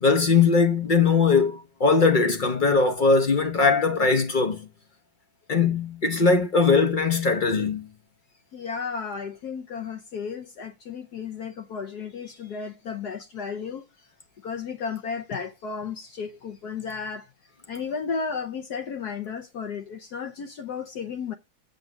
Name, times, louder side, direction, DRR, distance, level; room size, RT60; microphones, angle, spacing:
voice 1, 0.0-4.7 5.5-7.9, left 4 dB, 90° left, 0.4 m, -20 dB
voice 2, 8.5-14.1 14.4-17.3 17.7-21.3, left 5 dB, 60° left, 1.1 m, -33 dB
7.9 x 6.5 x 6.0 m
omnidirectional pair, 2.3 m